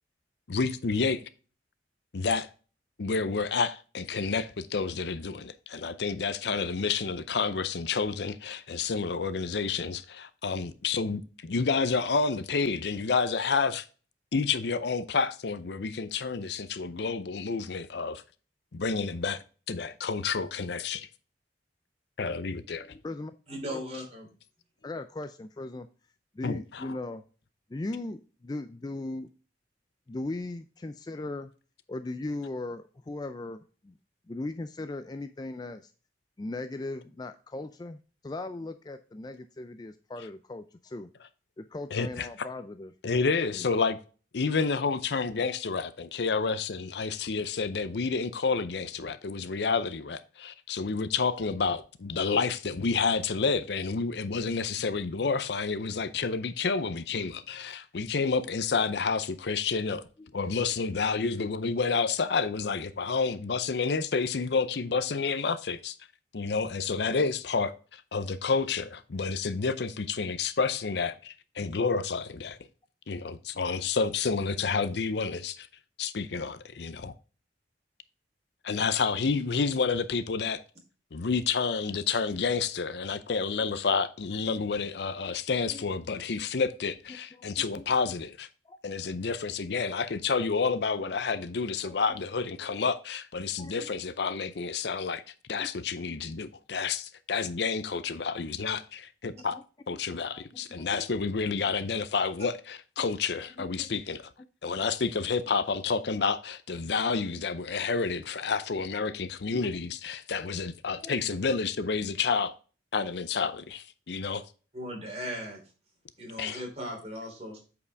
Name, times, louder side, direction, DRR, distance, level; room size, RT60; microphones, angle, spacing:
voice 1, 0.5-1.3 2.1-2.5 3.0-13.8 14.3-18.2 18.7-21.1 22.2-23.0 26.4-27.0 41.9-42.5 43.0-44.0 44.3-60.0 60.3-66.0 66.3-72.6 73.1-75.7 76.0-77.1 78.6-80.6 81.1-88.5 88.8-99.6 99.9-104.2 104.6-112.5 112.9-114.4 116.4-116.6, left 5 dB, 65° left, 0.5 m, -29 dB
voice 2, 22.9-23.3 23.7-23.8 24.8-25.9 26.3-27.2 27.7-29.3 30.1-31.5 31.9-33.9 34.3-35.9 36.4-41.1 41.6-42.9 43.5-43.6 85.2-85.3 85.7-85.9 87.1-87.9 88.7-88.8 91.8-92.0 93.6-93.9 99.3-99.6 99.9-100.0 100.3-101.1 101.6-101.7 103.6-103.9 109.5-109.7 111.0-111.2, left 2 dB, 20° left, 0.3 m, -38 dB
voice 3, 23.5-24.3 114.7-115.6 116.2-117.6, equal, 35° right, 3.1 m, -37 dB
8.3 x 4.9 x 3.4 m
head